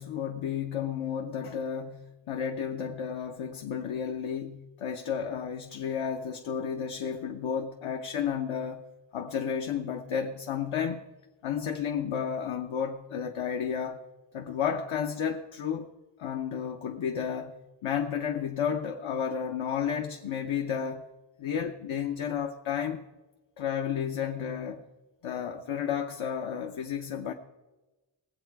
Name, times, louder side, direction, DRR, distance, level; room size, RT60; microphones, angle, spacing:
voice 1, 0.0-8.8 9.1-11.1 11.4-14.0 14.3-15.9 16.2-21.1 21.4-23.0 23.6-24.8 25.2-27.3, left 7 dB, 75° left, 0.8 m, -32 dB
19.5 x 8.0 x 4.6 m
cardioid pair, 60°, 49 cm